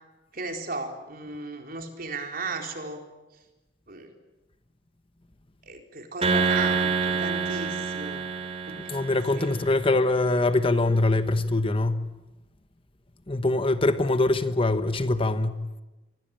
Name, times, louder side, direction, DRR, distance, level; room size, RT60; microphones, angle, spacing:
voice 1, 0.3-3.0 3.9-4.1 5.6-8.3 8.7-8.8 9.3-9.5, right 3 dB, 50° right, 4.1 m, -35 dB
sound 1, 6.2-9.7, right 4 dB, 35° right, 4.0 m, -27 dB
voice 2, 8.9-12.0 13.3-15.6, left 2 dB, 30° left, 1.1 m, -23 dB
27.0 x 23.0 x 8.9 m
head